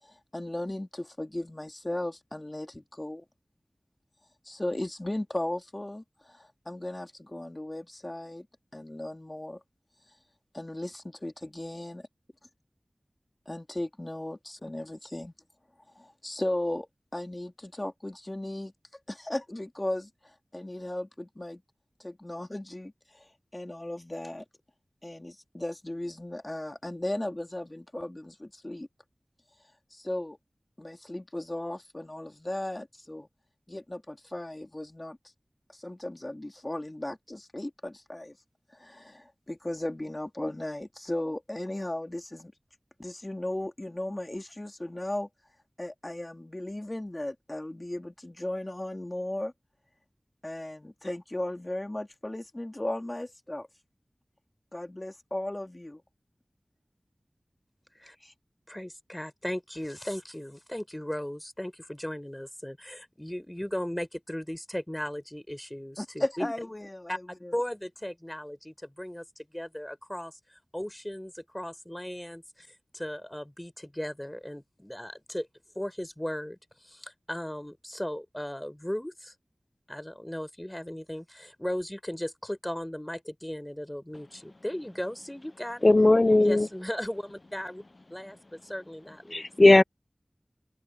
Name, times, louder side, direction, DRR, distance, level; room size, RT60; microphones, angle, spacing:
voice 1, 0.0-3.2 4.4-8.5 8.7-9.6 10.5-12.0 13.5-15.3 15.9-18.7 19.1-21.6 22.0-24.4 25.0-28.9 29.9-30.4 30.8-33.3 33.7-35.2 35.7-38.4 38.7-42.5 43.0-45.3 45.8-49.5 50.4-53.7 54.7-56.0 58.2-58.3 66.0-67.5, left 1 dB, 30° left, 3.1 m, -36 dB
voice 2, 58.7-66.5 67.1-67.2 67.5-69.3 69.5-72.7 72.9-75.5 75.8-79.3 79.9-85.9 86.4-87.8 88.1-89.5, equal, 15° left, 5.5 m, -37 dB
voice 3, 85.8-86.7 89.3-89.8, left 2 dB, 50° left, 0.4 m, -18 dB
open air
wide cardioid pair, 40°, 0 cm